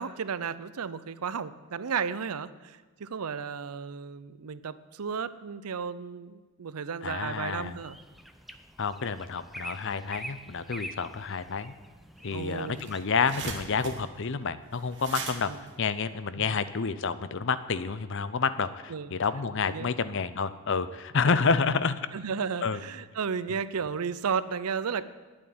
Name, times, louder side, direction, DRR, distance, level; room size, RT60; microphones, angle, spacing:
voice 1, 0.0-8.0 12.3-12.9 15.5-15.6 16.4-16.6 18.9-19.1 19.7-19.9 21.6-21.7 22.1-25.0, right 6 dB, 85° right, 15 dB, 0.6 m, -34 dB
voice 2, 7.0-7.8 8.8-11.7 12.2-15.5 15.8-21.9 22.6-22.8, left 5 dB, 55° left, 13 dB, 0.6 m, -29 dB
sound 1, 7.3-13.0, right 1 dB, ahead, 0.6 m, -45 dB
sound 2, 12.2-12.3 12.5-16.8, right 5 dB, 55° right, 1.5 m, -41 dB
9.5 x 8.7 x 9.4 m, 1.3 s
head